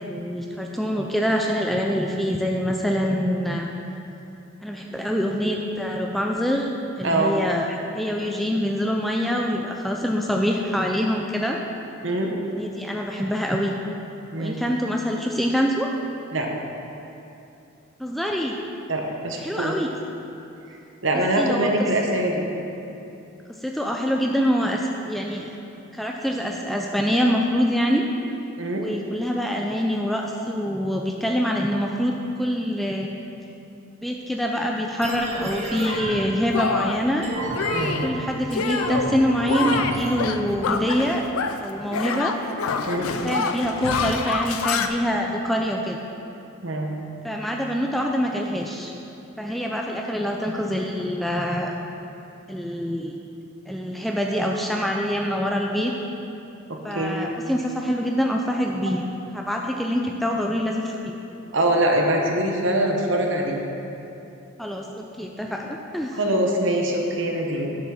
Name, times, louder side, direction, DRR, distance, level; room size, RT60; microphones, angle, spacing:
voice 1, 0.0-3.7 4.6-11.6 12.5-13.7 14.4-15.9 18.0-18.6 19.4-19.9 21.4-21.7 23.6-25.5 25.9-28.1 28.8-33.2 34.0-37.3 38.0-41.3 41.5-42.4 43.1-46.0 47.2-48.9 49.4-51.7 52.5-53.2 53.7-55.9 56.8-59.0 59.3-61.2 64.6-66.2, equal, ahead, 0 dB, 0.4 m, -25 dB
voice 2, 7.0-7.3 12.0-12.3 14.3-14.6 16.3-16.5 18.9-19.8 21.0-22.5 28.6-28.9 37.7-38.0 42.9-43.1 46.6-46.9 56.7-57.3 61.5-63.6 66.1-67.8, right 1 dB, 60° right, 1 dB, 1.0 m, -23 dB
sound 1, 35.0-40.7, right 1 dB, 30° right, 1.4 m, -31 dB
Shatter, 35.8-36.0 36.5-37.1 37.5-38.1 38.5-39.1 39.5-41.7 41.9-44.9, left 5 dB, 85° left, 0.5 m, -27 dB
8.1 x 5.8 x 6.4 m, 2.9 s
head